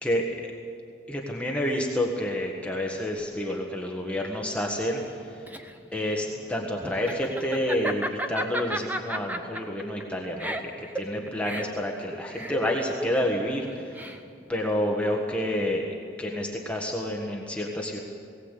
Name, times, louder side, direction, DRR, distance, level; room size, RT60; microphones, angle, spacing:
voice 1, 0.0-0.5 1.1-5.0 5.3-5.4 5.9-14.1 14.5-15.9 16.2-18.0, left 1 dB, 5° left, 0 dB, 1.5 m, -29 dB
Laughter, 5.1-14.5, right 1 dB, 10° right, 1.0 m, -34 dB
19.0 x 18.0 x 8.3 m, 2.4 s
head